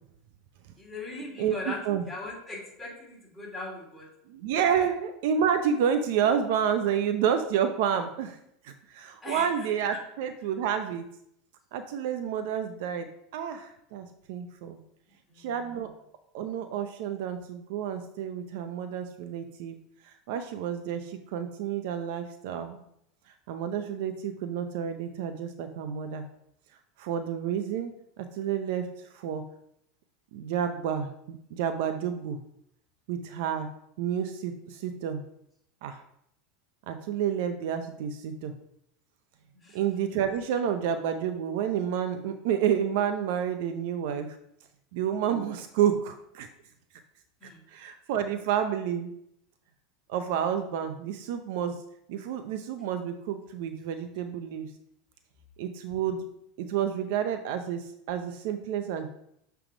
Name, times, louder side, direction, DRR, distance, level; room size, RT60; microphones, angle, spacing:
voice 1, 0.8-4.2 4.4-4.9 9.2-10.0 15.3-15.9 39.5-39.8 47.4-47.6, left 2 dB, 5° left, -5 dB, 2.9 m, -40 dB
voice 2, 1.4-2.0 4.3-8.4 8.6-11.0 11.7-14.8 15.4-15.9 16.3-19.7 20.3-22.8 23.5-26.3 27.0-27.9 28.2-28.9 29.1-29.4 30.3-32.4 33.1-33.7 34.0-35.2 35.8-36.0 36.9-38.5 39.7-44.4 44.9-46.5 47.7-49.1 50.1-51.8 52.1-54.7 55.6-56.2 56.6-59.1, right 8 dB, 70° right, 8 dB, 0.6 m, -29 dB
7.2 x 3.4 x 5.0 m, 0.74 s
supercardioid pair, 115°, 0 cm